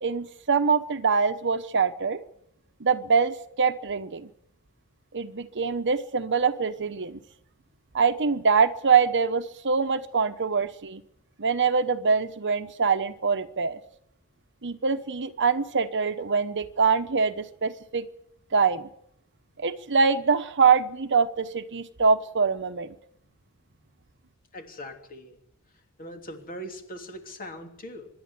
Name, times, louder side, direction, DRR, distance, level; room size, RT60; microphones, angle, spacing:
voice 1, 0.0-2.2 2.8-4.3 5.1-7.2 7.9-11.0 11.4-13.8 14.6-18.1 18.5-18.9 19.6-22.9, right 5 dB, 55° right, 11 dB, 1.1 m, -24 dB
voice 2, 24.5-25.4 26.0-28.1, equal, 40° left, 4 dB, 3.2 m, -40 dB
25.0 x 11.5 x 9.8 m, 0.73 s
head